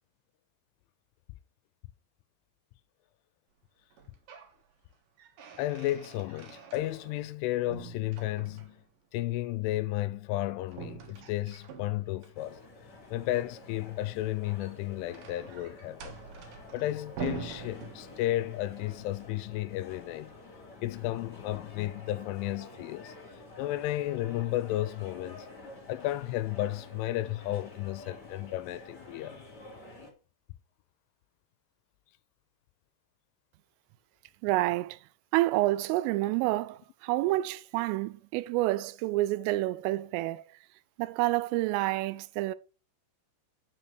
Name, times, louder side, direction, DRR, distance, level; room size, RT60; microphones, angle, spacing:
sound 1, 3.9-4.6 4.9-7.4 7.7-8.9 10.7-12.3 14.3-18.5, right 7 dB, 60° right, 2.5 m, -45 dB
voice 1, 5.6-8.8 9.1-12.6 13.1-16.2 16.7-20.4 20.8-23.1 23.6-25.5 25.9-29.4, left 15 dB, 85° left, 3.0 m, -33 dB
sound 2, 12.3-30.1, left 2 dB, 25° left, 2.8 m, -50 dB
voice 2, 34.4-35.0 35.3-40.4 41.0-42.6, right 18 dB, 90° right, 3.2 m, -28 dB
7.2 x 6.8 x 5.9 m
omnidirectional pair, 5.7 m